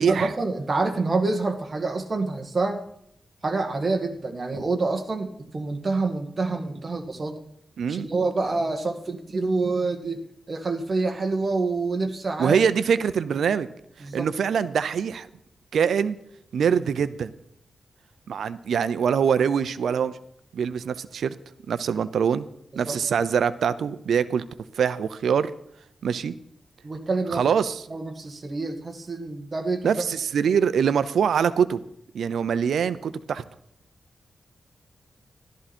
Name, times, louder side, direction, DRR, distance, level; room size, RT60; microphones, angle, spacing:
voice 1, 0.0-2.8 3.4-7.4 7.9-10.2 10.5-12.6 14.0-14.3 22.9-23.0 26.8-27.4 27.9-29.9, right 3 dB, 35° right, 4 dB, 2.0 m, -27 dB
voice 2, 7.8-8.1 12.4-13.7 14.1-15.3 15.7-16.2 16.5-17.3 18.3-20.2 20.5-21.3 21.7-22.5 22.8-24.4 24.7-25.5 26.0-26.3 27.3-27.8 29.8-31.8 32.1-33.4, right 7 dB, 85° right, 14 dB, 0.7 m, -23 dB
14.0 x 12.5 x 4.4 m, 0.73 s
wide cardioid pair, 115°, 0 cm